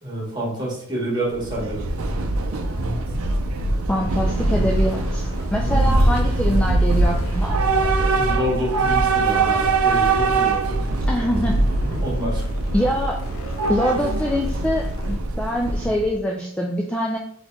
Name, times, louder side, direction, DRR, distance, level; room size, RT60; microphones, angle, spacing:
voice 1, 0.0-1.8 5.6-5.9 8.1-10.8 11.3-11.4 11.9-12.4, right 1 dB, 20° right, -5 dB, 1.7 m, -28 dB
Train / Subway metro underground, 1.3-16.2, right 2 dB, 85° right, 0.5 m, -22 dB
voice 2, 3.9-7.6 11.1-11.7 12.7-13.2 13.7-17.2, equal, 5° left, -1 dB, 0.3 m, -24 dB
sound 1, 4.3-15.3, equal, 85° left, 0.7 m, -34 dB
4.2 x 3.0 x 3.5 m, 0.64 s
head